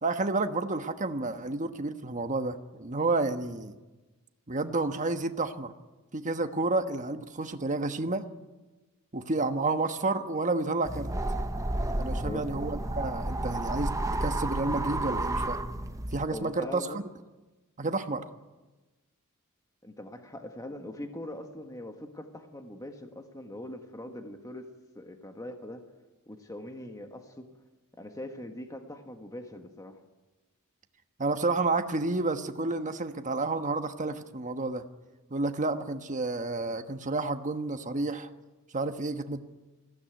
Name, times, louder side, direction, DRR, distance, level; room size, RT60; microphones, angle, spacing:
voice 1, 0.0-3.7 4.5-5.7 6.1-8.2 9.1-11.1 12.0-13.9 14.2-15.6 16.1-17.0 17.8-18.2 31.2-34.8 35.3-38.3 38.7-39.5, right 3 dB, 35° right, 7 dB, 1.3 m, -30 dB
sound 1, 10.8-16.2, right 1 dB, 15° right, 0.9 m, -31 dB
voice 2, 12.1-12.5 16.3-17.0 19.8-24.7 24.9-25.8 26.3-27.5 28.0-30.0, left 1 dB, 15° left, 5 dB, 1.5 m, -42 dB
21.5 x 16.0 x 9.1 m, 1.2 s
head